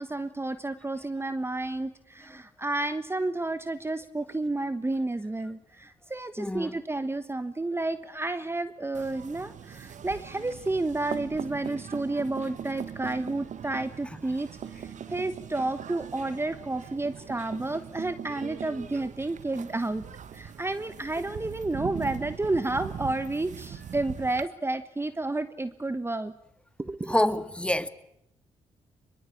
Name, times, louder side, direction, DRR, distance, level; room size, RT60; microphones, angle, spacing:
voice 1, 0.0-20.0 20.3-26.3 26.8-27.1, right 2 dB, 15° right, 1.3 m, -31 dB
voice 2, 6.4-6.8 27.1-27.9, left 1 dB, 10° left, 2.0 m, -26 dB
sound 1, 8.9-24.5, right 8 dB, 65° right, 1.5 m, -41 dB
24.0 x 22.5 x 8.6 m
supercardioid pair, 60°, 14 cm